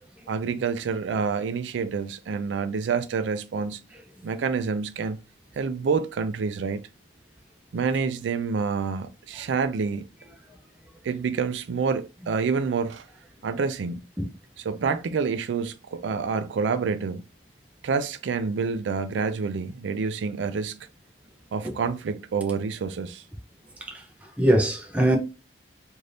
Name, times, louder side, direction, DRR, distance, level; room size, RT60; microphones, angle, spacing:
voice 1, 0.3-3.8 4.2-5.2 5.6-6.8 7.7-10.1 11.0-13.1 13.4-14.0 14.6-17.2 17.8-20.9 21.5-23.2, right 5 dB, 85° right, 0.4 m, -28 dB
voice 2, 24.4-25.2, right 1 dB, 10° right, 0.5 m, -22 dB
3.3 x 2.6 x 2.5 m
head